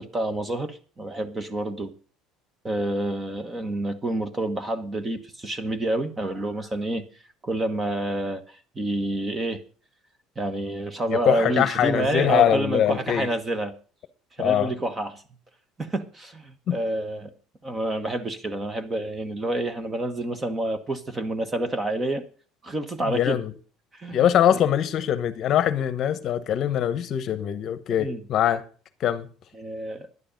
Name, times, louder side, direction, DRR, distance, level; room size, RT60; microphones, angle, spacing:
voice 1, 0.0-1.9 2.6-7.0 7.4-9.6 10.4-13.7 14.4-15.2 15.8-17.3 17.6-22.3 22.6-23.4 23.9-24.6 28.0-28.2 29.5-30.1, right 1 dB, 15° right, 1.3 m, -28 dB
voice 2, 11.1-13.3 14.4-14.7 16.7-16.8 23.1-23.5 24.1-28.6 29.0-29.3, left 10 dB, 45° left, 1.0 m, -23 dB
11.0 x 9.8 x 5.2 m
cardioid pair, 150°, 0 cm